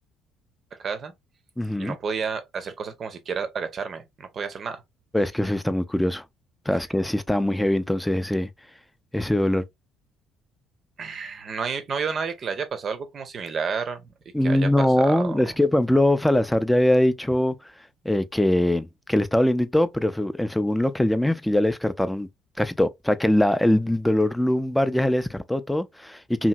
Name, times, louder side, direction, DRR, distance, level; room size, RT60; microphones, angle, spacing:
voice 1, 0.7-1.1 1.8-4.8 11.0-14.1 14.4-15.4, right 5 dB, 45° right, 0.6 m, -31 dB
voice 2, 1.6-2.0 5.1-6.2 6.7-8.5 9.1-9.6 14.3-17.5 18.0-22.3 22.6-26.5, left 1 dB, 5° left, 0.4 m, -22 dB
2.8 x 2.7 x 2.2 m
figure-of-eight pair, 55°, 0 cm